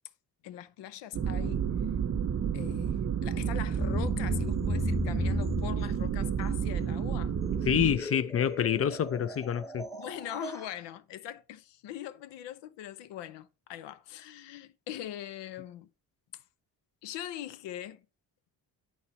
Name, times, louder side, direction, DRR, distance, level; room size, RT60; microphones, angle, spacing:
voice 1, 0.4-1.6 2.5-7.3 9.9-15.9 16.3-16.4 17.0-18.1, left 11 dB, 85° left, 0.7 m, -41 dB
sound 1, 1.1-8.0, right 8 dB, 35° right, 0.5 m, -30 dB
sound 2, 3.8-10.7, left 2 dB, 5° left, 1.1 m, -37 dB
voice 2, 7.7-9.9, left 9 dB, 35° left, 0.4 m, -27 dB
8.4 x 4.2 x 4.2 m
cardioid pair, 70°, 41 cm